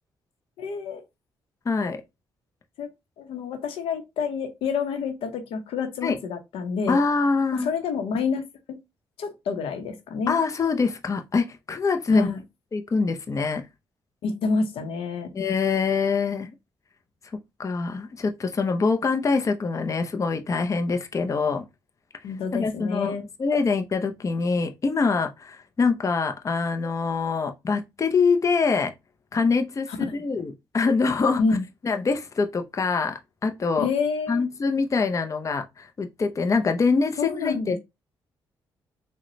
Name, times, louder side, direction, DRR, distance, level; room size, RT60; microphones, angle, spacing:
voice 1, 0.6-1.0 2.8-2.9 3.2-7.0 7.5-8.8 9.2-10.4 12.1-12.4 14.2-15.3 22.2-23.2 29.9-30.2 31.4-31.6 33.8-34.4 37.2-37.8, left 5 dB, 80° left, 0.7 m, -28 dB
voice 2, 1.7-2.0 6.0-6.2 6.9-7.7 10.3-12.3 12.7-13.7 15.3-16.5 17.6-21.6 22.5-28.9 29.3-31.4 31.8-33.9 34.3-37.8, left 4 dB, 35° left, 0.5 m, -24 dB
3.7 x 2.1 x 3.0 m
cardioid pair, 65°, 9 cm